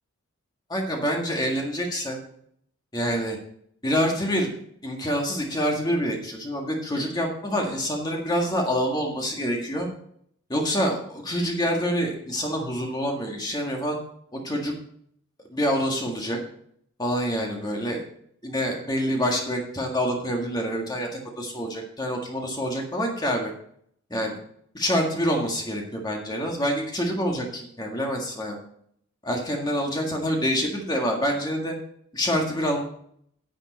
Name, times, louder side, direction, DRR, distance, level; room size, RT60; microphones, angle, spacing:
voice 1, 0.7-2.2 2.9-3.4 3.8-4.5 4.8-9.9 10.5-14.0 14.4-14.7 15.5-16.4 17.0-18.0 18.4-23.5 24.1-24.3 24.7-28.6 29.2-31.7 32.1-32.8, equal, 20° left, 0 dB, 1.7 m, -26 dB
10.5 x 7.6 x 4.1 m, 0.66 s
head